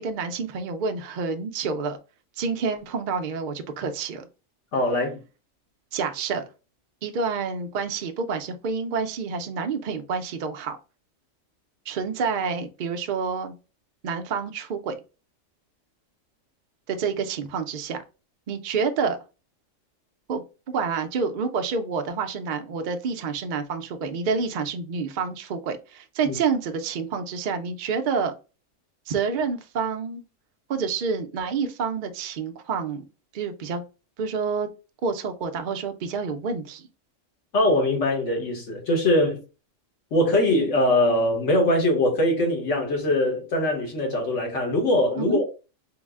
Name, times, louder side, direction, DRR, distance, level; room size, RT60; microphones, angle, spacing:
voice 1, 0.0-2.0 2.4-4.3 5.9-6.5 7.0-10.8 11.9-13.5 14.0-15.0 16.9-18.0 18.5-19.2 20.3-28.3 29.1-30.2 30.7-33.0 33.3-33.8 34.2-34.7 35.0-36.9 45.2-45.4, right 5 dB, 60° right, 0.5 m, -28 dB
voice 2, 4.7-5.2 26.2-26.4 37.5-39.4 40.1-45.5, left 1 dB, 65° left, 1.5 m, -22 dB
3.8 x 2.1 x 3.4 m
omnidirectional pair, 1.4 m